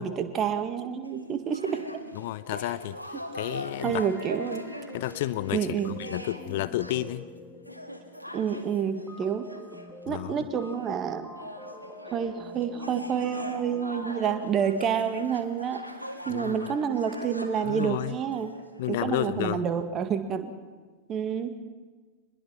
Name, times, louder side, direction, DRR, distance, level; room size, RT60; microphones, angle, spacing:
voice 1, 0.0-1.9 3.8-4.7 5.5-6.0 8.3-9.5 10.1-11.3 12.1-15.8 16.3-18.5 18.9-20.5 21.1-21.5, right 7 dB, 30° right, 9 dB, 1.9 m, -28 dB
sound 1, 1.0-11.0 11.4-18.9, left 1 dB, 90° right, 1.8 m, -42 dB
voice 2, 2.1-4.1 4.9-7.3 10.1-10.4 16.3-16.8 17.7-18.2 18.8-19.6, left 15 dB, 50° left, 15 dB, 0.7 m, -31 dB
sound 2, 3.8-14.8, left 1 dB, 5° right, 2.5 m, -46 dB
25.0 x 21.0 x 5.8 m, 1.4 s
figure-of-eight pair, 90°, 0 cm